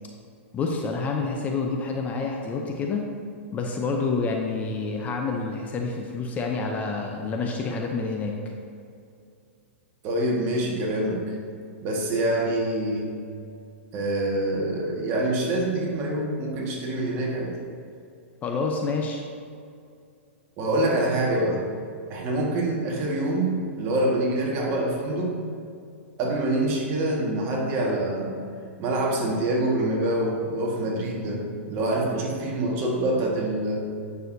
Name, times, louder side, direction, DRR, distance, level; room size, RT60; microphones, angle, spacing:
voice 1, 0.5-3.0 3.5-8.3 18.4-19.2, left 4 dB, 20° left, 1 dB, 0.6 m, -28 dB
voice 2, 10.0-11.2 11.8-13.1 13.9-17.5 20.6-21.6 22.1-25.3 26.2-28.4 28.8-33.9, right 1 dB, 35° right, -2 dB, 1.6 m, -25 dB
9.1 x 6.3 x 2.7 m, 2.4 s
hypercardioid pair, 135°, 7 cm